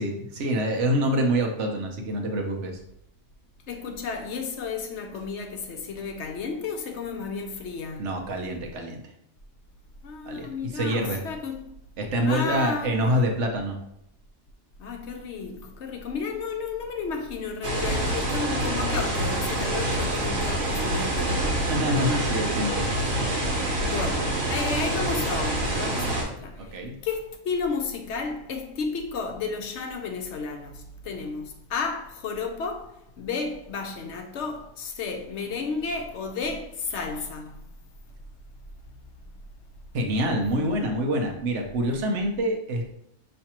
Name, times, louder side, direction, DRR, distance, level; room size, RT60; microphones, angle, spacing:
voice 1, 0.0-2.7 8.0-9.0 10.2-11.2 12.0-13.8 21.7-22.9 26.7-26.9 39.9-42.9, equal, 70° right, 1.1 m, -26 dB
voice 2, 3.7-8.1 10.0-11.7 12.2-13.2 14.8-22.7 23.9-26.7 27.0-37.6, left 4 dB, 70° left, 0.9 m, -33 dB
sound 1, 17.6-26.2, right 1 dB, 85° right, 1.5 m, -26 dB
5.7 x 3.2 x 2.9 m
omnidirectional pair, 1.3 m